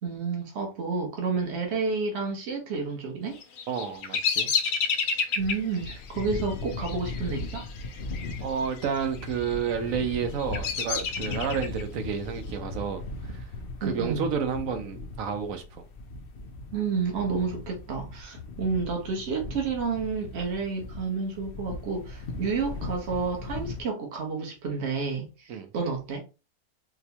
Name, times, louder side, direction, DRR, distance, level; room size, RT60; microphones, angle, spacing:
voice 1, 0.0-3.4 5.3-7.7 13.8-14.3 16.7-26.2, right 4 dB, 55° right, 1.2 m, -30 dB
Bird vocalization bird call bird song, 3.4-8.4 8.7-9.3 9.8-11.8, left 6 dB, 85° left, 1.1 m, -30 dB
voice 2, 3.7-4.5 8.4-13.0 13.3-13.4 13.8-15.6 25.5-25.7, right 7 dB, 80° right, 1.1 m, -30 dB
sound 1, 5.4-23.8, left 3 dB, 60° left, 0.6 m, -38 dB
4.3 x 2.2 x 2.8 m
omnidirectional pair, 1.4 m